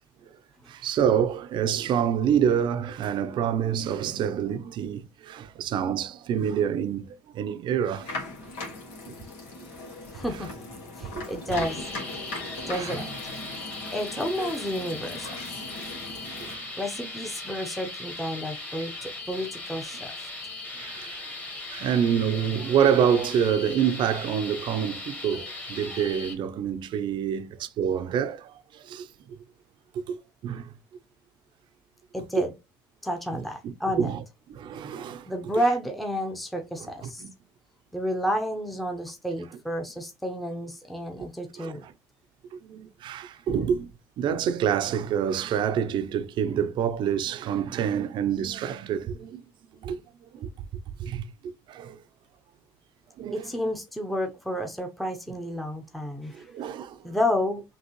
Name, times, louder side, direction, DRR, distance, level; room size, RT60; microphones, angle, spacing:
voice 1, 0.7-8.1 9.0-9.2 11.0-11.2 12.5-12.9 15.7-15.8 16.4-16.7 20.8-21.2 21.7-29.1 29.9-30.2 30.4-30.7 33.6-34.2 34.5-35.3 37.2-37.3 41.6-41.7 42.6-43.9 44.2-49.4 49.8-50.0 50.3-50.5 51.0-52.0 53.2-53.5 56.3-57.2, right 8 dB, 55° right, 0.6 m, -27 dB
sound 1, 7.9-16.5, left 2 dB, 80° left, 1.9 m, -39 dB
voice 2, 10.1-10.5 11.0-11.9 12.7-13.1 13.9-15.4 16.8-20.1 32.1-32.5 33.0-34.1 35.3-37.2 37.9-41.9 53.3-56.5 57.0-57.6, equal, ahead, 0.8 m, -30 dB
sound 2, 11.5-26.4, left 2 dB, 15° left, 1.4 m, -38 dB
5.2 x 2.9 x 3.1 m
cardioid pair, 115°, 10 cm